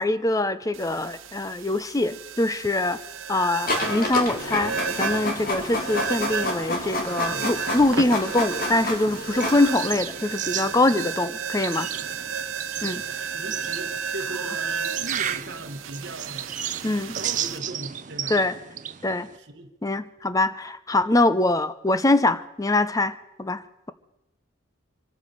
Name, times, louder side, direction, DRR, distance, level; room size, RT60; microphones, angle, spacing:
voice 1, 0.0-3.0 3.3-11.9 12.8-13.0 16.8-17.2 18.3-18.6 19.0-19.3 19.8-23.9, left 2 dB, 15° left, 0.6 m, -23 dB
sound 1, 0.7-17.6, right 6 dB, 75° right, 0.9 m, -33 dB
Printer, 3.7-9.9, left 1 dB, 45° left, 2.5 m, -29 dB
sound 2, 4.3-19.4, right 9 dB, 40° right, 0.6 m, -36 dB
voice 2, 6.8-7.5 13.1-16.5 17.1-18.4 19.3-19.7, right 2 dB, 55° right, 1.2 m, -39 dB
25.0 x 8.4 x 6.6 m
head